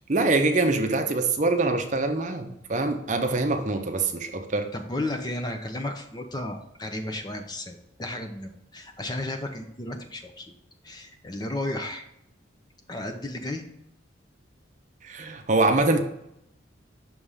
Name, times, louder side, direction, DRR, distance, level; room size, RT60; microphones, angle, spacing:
voice 1, 0.1-4.7 15.0-16.0, right 2 dB, 40° right, 5 dB, 0.6 m, -24 dB
voice 2, 4.7-10.5 10.8-12.0 12.9-13.7, left 1 dB, 20° left, 4 dB, 0.6 m, -33 dB
6.1 x 3.4 x 5.5 m, 0.79 s
head